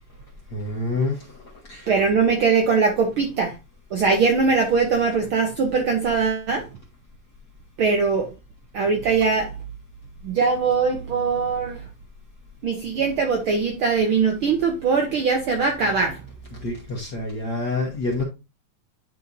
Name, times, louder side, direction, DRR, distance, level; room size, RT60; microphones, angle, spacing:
voice 1, 0.5-1.4 1.7-1.9 16.5-18.2, left 2 dB, 50° left, 1.3 m, -27 dB
voice 2, 1.9-3.6 3.9-6.7 7.8-8.3 8.7-9.5 10.2-11.9 12.6-16.2, right 5 dB, 65° right, 1.3 m, -21 dB
9.8 x 4.5 x 2.6 m
omnidirectional pair, 3.4 m